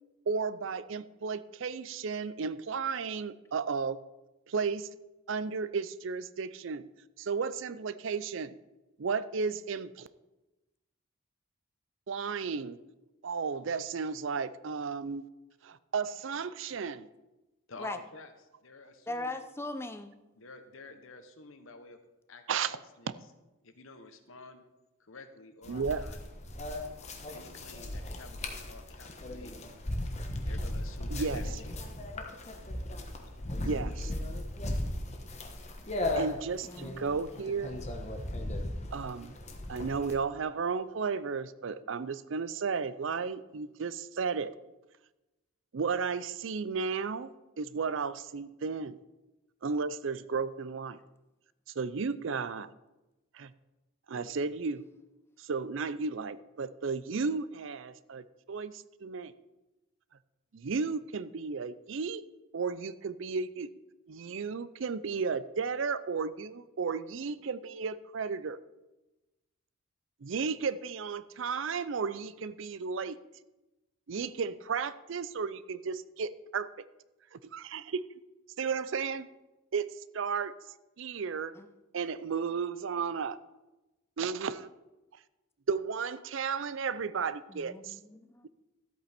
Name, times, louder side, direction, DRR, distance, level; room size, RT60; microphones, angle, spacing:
voice 1, 0.3-4.0 4.5-4.9 5.3-6.9 7.2-8.5 9.0-10.1 12.1-12.8 13.2-15.2 15.6-17.1 22.5-22.8 25.7-26.0 31.1-31.4 33.6-34.1 36.2-37.7 38.9-39.4 39.7-44.5 45.7-48.9 49.6-51.0 51.8-52.7 53.3-53.5 54.1-54.8 55.4-59.3 60.5-62.2 62.5-63.7 64.1-68.6 70.2-73.2 74.1-76.7 77.3-78.0 78.6-79.3 79.7-80.6 81.0-81.5 81.9-83.4 84.2-84.7 85.7-88.0, right 5 dB, 65° right, 16 dB, 0.5 m, -34 dB
voice 2, 17.7-18.3 18.6-19.4 20.4-22.0 22.3-23.1 23.6-24.7 25.0-26.3 27.2-29.6 30.2-31.8, left 3 dB, 75° left, 8 dB, 1.1 m, -50 dB
voice 3, 19.1-20.2 36.6-37.2 81.5-81.7 87.5-88.5, left 2 dB, 10° left, 8 dB, 0.6 m, -40 dB
sound 1, 25.6-40.1, left 1 dB, 35° left, 1.2 m, -37 dB
13.0 x 8.4 x 4.3 m, 1.0 s
head